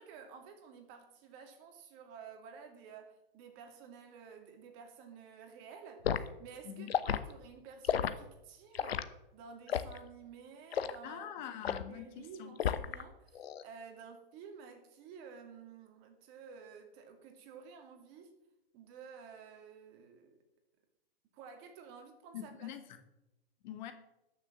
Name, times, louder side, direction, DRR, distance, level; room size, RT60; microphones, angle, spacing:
voice 1, 0.0-6.1 6.4-11.5 11.9-18.4 18.7-20.3 21.3-22.7, right 6 dB, 35° right, 2.5 m, -52 dB
Liquid, 6.0-6.3 6.9-7.2 7.8-8.1 8.8-9.1 9.7-10.0 10.7-11.0 11.6-11.9 12.6-13.0 13.4-13.6, left 9 dB, 80° left, 1.1 m, -32 dB
voice 2, 11.0-12.6 22.3-23.0 23.6-23.9, left 10 dB, 50° left, 1.7 m, -44 dB
13.0 x 6.8 x 7.6 m
hypercardioid pair, 135°, 30 cm